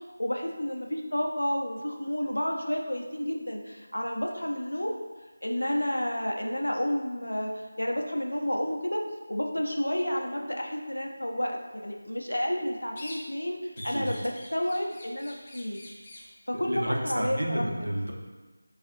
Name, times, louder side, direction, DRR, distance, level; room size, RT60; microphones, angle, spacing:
voice 1, 0.0-5.0 5.4-9.0 9.3-15.8 16.5-17.6, equal, 85° left, 1 dB, 0.5 m, -30 dB
sound 1, 13.0-13.5 13.8-16.3, left 1 dB, 25° left, 0.5 m, -45 dB
voice 2, 16.6-18.1, right 1 dB, 80° right, -1 dB, 0.7 m, -30 dB
5.3 x 2.4 x 2.6 m, 1.3 s
figure-of-eight pair, 165°, 0 cm